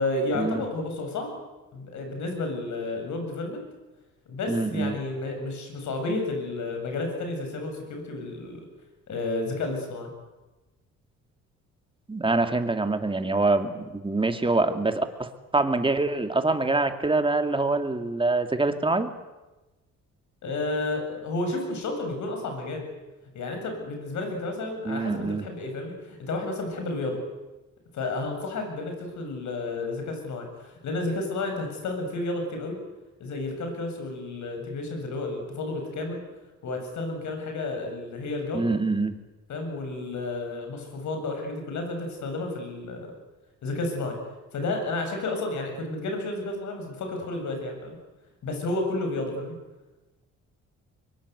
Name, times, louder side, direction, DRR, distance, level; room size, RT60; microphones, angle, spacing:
voice 1, 0.0-1.3 1.7-3.6 4.3-8.6 9.1-10.1 20.4-22.9 23.3-27.2 27.9-32.8 33.2-36.2 36.6-38.6 39.5-43.1 43.6-44.2 44.5-48.0 48.4-49.6, left 2 dB, 70° left, 4 dB, 7.8 m, -31 dB
voice 2, 4.5-5.0 12.1-19.1 24.8-25.4 38.5-39.1, right 3 dB, 15° right, 7 dB, 2.6 m, -25 dB
24.5 x 23.0 x 8.3 m, 1.1 s
cardioid pair, 90°, 30 cm